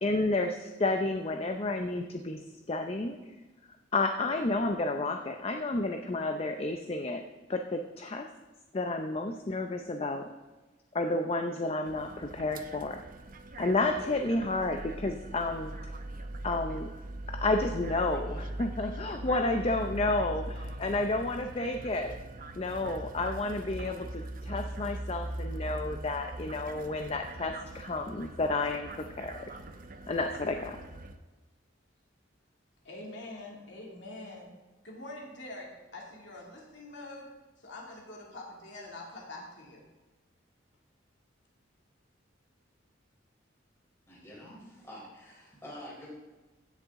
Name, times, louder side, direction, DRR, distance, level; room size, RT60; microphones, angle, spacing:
voice 1, 0.0-2.4 2.7-3.2 3.9-7.2 7.5-8.3 8.7-10.3 10.9-13.0 13.6-15.7 16.4-16.9 17.3-22.1 22.6-28.9 29.2-29.5 30.1-30.8, left 2 dB, 30° left, 5 dB, 0.5 m, -31 dB
sound 1, 11.9-31.2, right 1 dB, 45° right, 0.7 m, -41 dB
voice 2, 32.8-34.5 34.8-37.3 37.6-39.8, left 2 dB, 65° left, -2 dB, 2.4 m, -45 dB
voice 3, 44.1-46.1, equal, 15° left, -5 dB, 3.8 m, -47 dB
15.5 x 6.9 x 3.7 m, 1.2 s
head